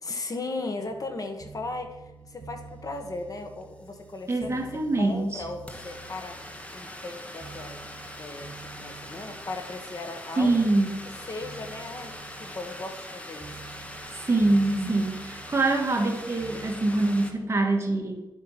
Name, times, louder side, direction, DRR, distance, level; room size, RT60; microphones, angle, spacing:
voice 1, 0.0-6.4 6.7-7.8 8.2-10.7 11.3-13.5, left 2 dB, 45° left, 5 dB, 1.5 m, -37 dB
sound 1, 0.9-17.3, right 5 dB, 55° right, 2.2 m, -49 dB
sound 2, 3.6-3.7 3.9-17.3, left 1 dB, 15° left, 1.5 m, -42 dB
voice 2, 4.3-5.4 10.4-10.9 14.1-18.2, right 2 dB, 30° right, 1 dB, 2.2 m, -24 dB
11.5 x 8.2 x 6.0 m, 0.99 s
wide cardioid pair, 145°, 9 cm